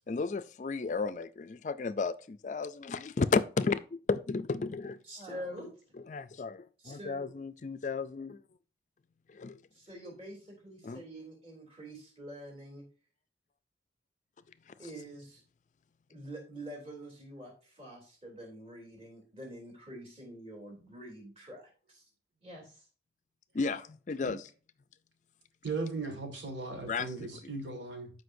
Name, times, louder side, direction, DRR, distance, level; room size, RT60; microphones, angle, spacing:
voice 1, 0.1-3.8 4.1-5.0 6.1-8.4 9.3-9.6 10.8-11.0 23.5-24.5 26.9-27.1, left 4 dB, 40° left, 0.4 m, -33 dB
voice 2, 5.0-5.7 6.8-7.3 9.7-12.8 14.8-15.4 16.1-22.0 22.4-22.9, right 1 dB, 35° right, 3.1 m, -46 dB
voice 3, 25.6-28.1, right 3 dB, 85° right, 2.0 m, -37 dB
14.0 x 5.1 x 2.6 m
head